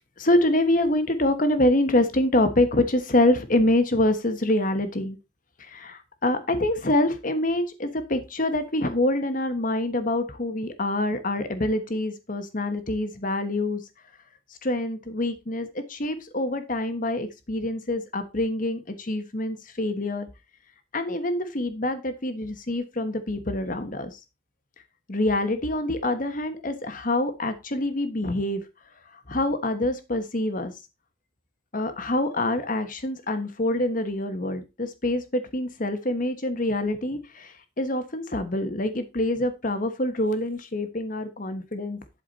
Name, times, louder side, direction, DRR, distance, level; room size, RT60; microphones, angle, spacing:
voice 1, 0.2-5.2 5.7-13.8 14.6-20.3 20.9-24.1 25.1-28.6 29.3-30.7 31.7-42.0, left 1 dB, 45° left, 9 dB, 1.3 m, -25 dB
11.5 x 4.8 x 4.1 m, 0.26 s
head